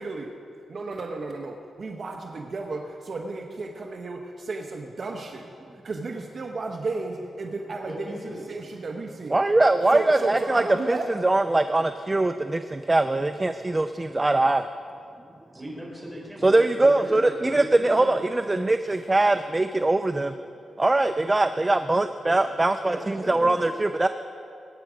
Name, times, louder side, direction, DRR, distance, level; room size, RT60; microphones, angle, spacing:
voice 1, 0.0-0.3 0.7-5.5 5.8-8.2 8.5-9.4 9.9-11.1, right 3 dB, 45° right, 2 dB, 1.0 m, -33 dB
voice 2, 7.8-8.5 9.6-10.1 15.5-18.2 22.3-22.4 22.9-23.8, equal, ahead, -3 dB, 4.2 m, -37 dB
voice 3, 9.3-14.7 16.4-20.4 20.8-24.1, right 2 dB, 20° right, 9 dB, 0.4 m, -22 dB
21.0 x 9.4 x 5.1 m, 2.5 s
wide cardioid pair, 120°, 0 cm